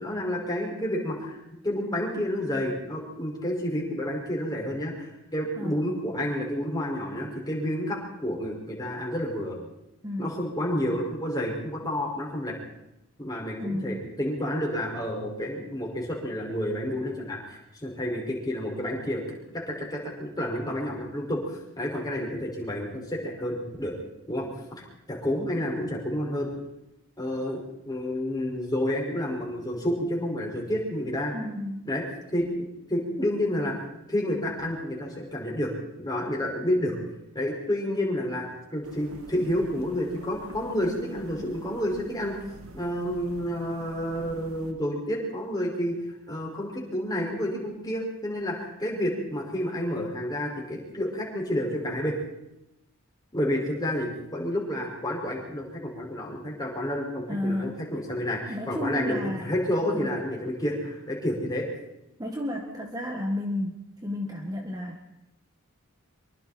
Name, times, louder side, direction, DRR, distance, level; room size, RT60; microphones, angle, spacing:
voice 1, 0.0-9.6 10.2-12.6 13.2-19.2 19.5-23.9 24.3-26.5 27.2-31.3 31.9-32.0 32.3-33.7 34.1-35.7 36.0-37.0 37.3-42.4 42.7-46.0 46.3-52.2 53.3-61.7, left 1 dB, 20° left, -2 dB, 5.6 m, -30 dB
voice 2, 10.0-10.4 13.6-14.0 31.3-31.8 57.3-57.8 58.5-59.5 59.9-60.2 62.2-65.1, left 1 dB, 20° right, 1 dB, 1.8 m, -32 dB
sound 1, 38.8-44.7, right 1 dB, 85° right, 2.2 m, -46 dB
25.5 x 23.5 x 4.4 m, 0.87 s
head